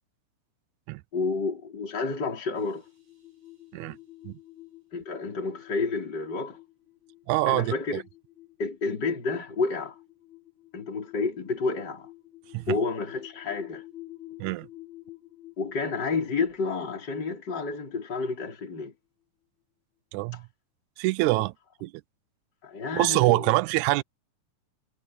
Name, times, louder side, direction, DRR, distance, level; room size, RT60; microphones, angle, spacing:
voice 1, 1.1-2.8 4.9-6.6 7.5-8.0 8.6-10.0 10.7-12.1 12.7-13.8 15.6-18.9 20.3-20.4 21.3-21.4 22.6-23.5, left 4 dB, 35° left, 4.8 m, -30 dB
sound 1, 2.6-18.9, left 16 dB, 60° right, 7.6 m, -50 dB
voice 2, 7.3-8.0 12.5-12.8 14.4-14.7 20.1-20.4 21.0-21.5 21.8-21.9 23.0-24.0, right 20 dB, 85° right, 2.0 m, -25 dB
omnidirectional pair, 3.4 m